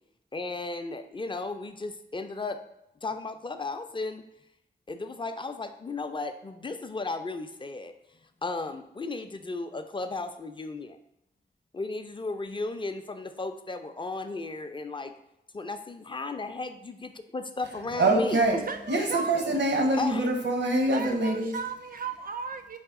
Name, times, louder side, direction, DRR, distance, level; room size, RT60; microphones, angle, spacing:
voice 1, 0.3-2.6 3.0-4.2 4.9-7.9 8.4-11.0 11.7-15.1 15.5-18.4 20.0-20.3, left 3 dB, 25° left, 8 dB, 0.4 m, -35 dB
voice 2, 18.0-18.6 18.9-21.5, right 2 dB, 80° right, 3 dB, 0.8 m, -24 dB
voice 3, 18.5-19.6 20.9-22.8, right 5 dB, 55° right, 8 dB, 0.5 m, -35 dB
4.8 x 2.9 x 3.6 m, 0.84 s
wide cardioid pair, 65°, 18 cm